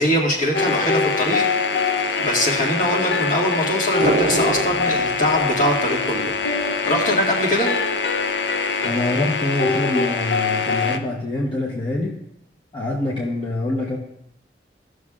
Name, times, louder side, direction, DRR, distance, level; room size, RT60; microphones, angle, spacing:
voice 1, 0.0-1.5 1.8-6.3 6.9-7.7, equal, 45° left, -2 dB, 1.9 m, -22 dB
sound 1, 0.5-11.0, left 4 dB, 75° left, 0.7 m, -23 dB
sound 2, 4.0-6.5 6.8-6.9, right 3 dB, 50° right, 0.4 m, -26 dB
voice 2, 8.8-12.2 12.7-14.0, left 2 dB, 30° left, -5 dB, 1.0 m, -25 dB
15.0 x 6.4 x 2.4 m, 0.81 s
head